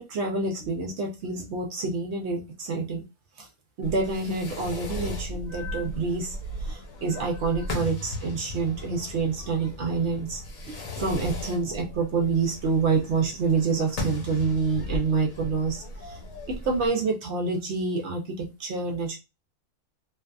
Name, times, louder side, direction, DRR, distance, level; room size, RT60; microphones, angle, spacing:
voice 1, 0.0-3.0 3.4-3.5 3.8-16.2 16.6-19.2, right 4 dB, 65° right, 2 dB, 0.7 m, -27 dB
Fireworks, 3.8-16.9, left 1 dB, 70° left, 1.1 m, -37 dB
2.5 x 2.3 x 2.2 m, 0.27 s
omnidirectional pair, 1.5 m